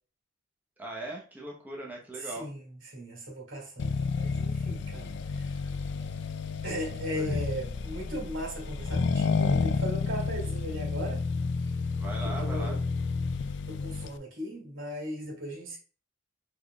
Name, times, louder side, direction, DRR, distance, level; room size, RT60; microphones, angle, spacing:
voice 1, 0.8-2.5 7.1-7.4 11.9-12.8, right 2 dB, 10° right, 0.9 m, -39 dB
voice 2, 2.2-5.6 6.6-11.2 11.6-11.7 12.2-12.8 13.7-15.8, equal, 80° right, 2.5 m, -38 dB
Accelerating revving vroom, 3.8-14.2, left 4 dB, 60° left, 0.4 m, -30 dB
5.0 x 4.3 x 2.3 m
head